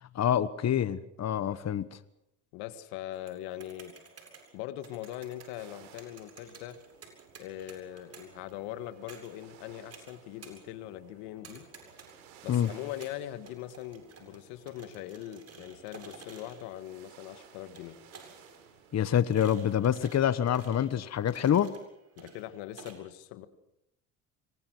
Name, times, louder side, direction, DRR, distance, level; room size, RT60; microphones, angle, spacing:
voice 1, 0.1-2.0 12.5-12.7 18.9-21.7, left 9 dB, 45° left, 1.2 m, -26 dB
voice 2, 2.5-4.0 4.5-6.8 7.4-11.7 12.4-18.0 22.2-23.5, left 13 dB, 80° left, 1.7 m, -41 dB
sound 1, 3.1-22.9, right 4 dB, 40° right, 7.7 m, -54 dB
sound 2, 5.6-19.8, right 7 dB, 85° right, 4.8 m, -57 dB
26.0 x 23.5 x 6.3 m
supercardioid pair, 70°, 37 cm